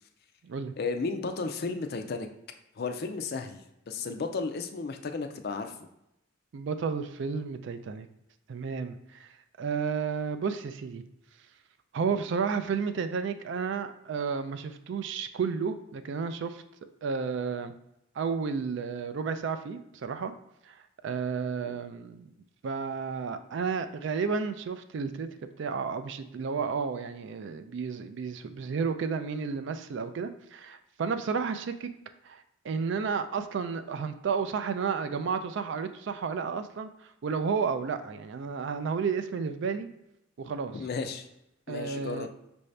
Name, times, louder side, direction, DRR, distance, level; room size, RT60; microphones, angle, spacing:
voice 1, 0.8-2.3 2.8-5.7 21.6-21.8 40.7-41.3 41.7-42.3, left 4 dB, 50° left, 7 dB, 0.4 m, -34 dB
voice 2, 6.5-8.1 8.5-9.3 9.6-11.0 11.9-16.6 17.0-17.7 18.2-20.3 20.7-22.3 22.6-25.3 25.6-31.9 32.2-39.9 40.4-40.8 41.7-42.3, right 5 dB, 60° right, 10 dB, 0.3 m, -32 dB
5.5 x 2.6 x 3.2 m, 0.83 s
head